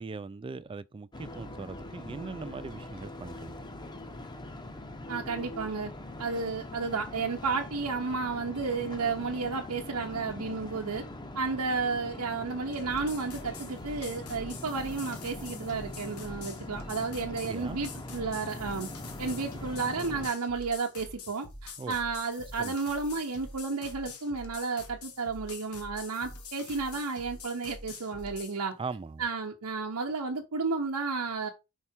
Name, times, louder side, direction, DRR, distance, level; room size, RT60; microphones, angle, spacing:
voice 1, 0.0-3.6 17.4-17.8 21.8-22.0 22.6-22.8 28.8-29.2, right 4 dB, 25° right, 0.3 m, -40 dB
sound 1, 1.1-20.3, left 1 dB, 20° left, 0.8 m, -42 dB
voice 2, 5.1-5.9 6.2-11.0 11.3-18.9 19.2-28.7 29.2-31.5, right 4 dB, 90° right, 0.9 m, -32 dB
sound 2, 12.7-28.6, left 3 dB, 80° left, 1.5 m, -46 dB
5.5 x 4.6 x 4.4 m
head